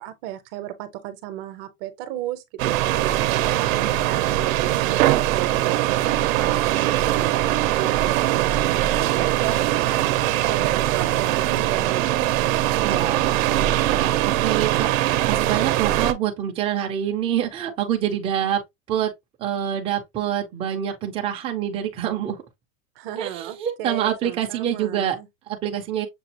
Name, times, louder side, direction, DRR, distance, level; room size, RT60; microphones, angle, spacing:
voice 1, 0.0-12.3 23.0-25.3, right 13 dB, 40° right, 0.8 m, -34 dB
sound 1, 2.6-16.1, right 14 dB, 75° right, 0.7 m, -21 dB
voice 2, 3.6-4.0 11.0-11.4 12.8-18.6 18.9-19.1 19.4-22.4 23.2-25.2 25.5-26.1, right 10 dB, 15° right, 0.5 m, -26 dB
6.9 x 2.4 x 2.8 m
supercardioid pair, 170°, 41 cm